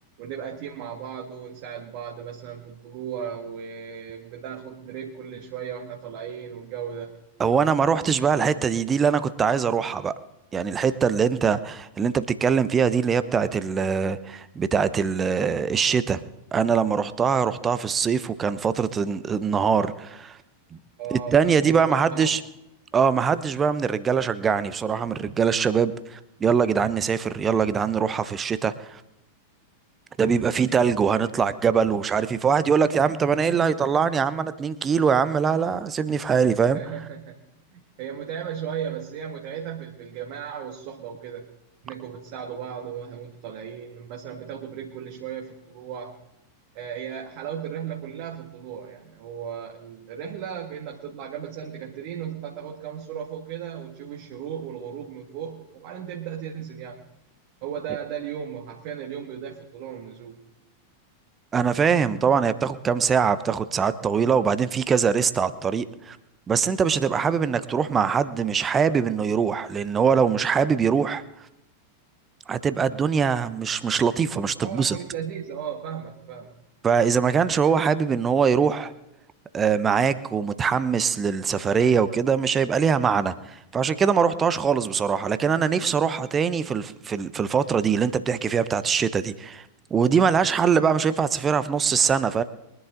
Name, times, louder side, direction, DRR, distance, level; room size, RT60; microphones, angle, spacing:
voice 1, 0.2-7.1 21.0-22.4 36.7-37.4 37.7-41.5 41.8-46.2 46.7-57.0 57.6-60.4 62.1-62.4 74.6-76.5, right 8 dB, 45° right, 1 dB, 1.8 m, -36 dB
voice 2, 7.4-10.1 10.5-16.2 16.5-20.4 20.7-20.8 21.1-22.4 22.9-29.0 30.2-36.8 61.5-66.2 66.5-71.2 72.5-75.0 76.8-78.9 79.5-92.4, right 6 dB, 20° right, 13 dB, 0.9 m, -22 dB
23.0 x 11.0 x 3.9 m, 0.88 s
figure-of-eight pair, 90°, 0 cm